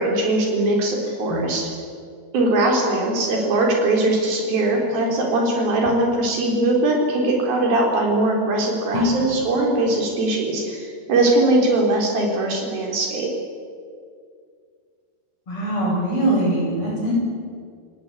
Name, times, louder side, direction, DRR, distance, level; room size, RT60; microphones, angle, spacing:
voice 1, 0.0-1.7 2.3-13.3, right 2 dB, 60° right, 0 dB, 5.8 m, -21 dB
voice 2, 15.5-17.1, right 1 dB, 30° left, -4 dB, 8.7 m, -22 dB
29.5 x 17.0 x 8.5 m, 2.2 s
omnidirectional pair, 4.8 m